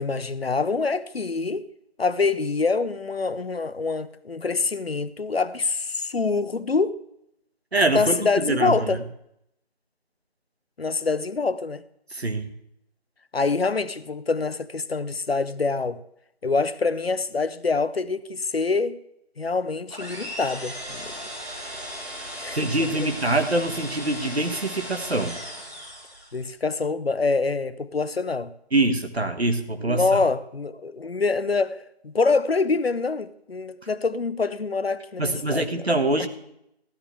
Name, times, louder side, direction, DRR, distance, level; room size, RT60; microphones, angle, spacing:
voice 1, 0.0-1.7 2.0-7.0 7.9-9.0 10.8-11.8 13.3-16.0 16.4-19.0 19.4-21.1 22.4-23.1 26.3-28.5 29.8-35.7, left 4 dB, 70° left, 0.7 m, -25 dB
voice 2, 7.7-9.0 12.1-12.5 22.5-25.4 28.7-30.2 35.2-36.3, right 2 dB, 75° right, 1.6 m, -24 dB
sound 1, 19.9-26.4, equal, 25° right, 2.7 m, -37 dB
14.5 x 11.5 x 3.3 m
figure-of-eight pair, 175°, 32 cm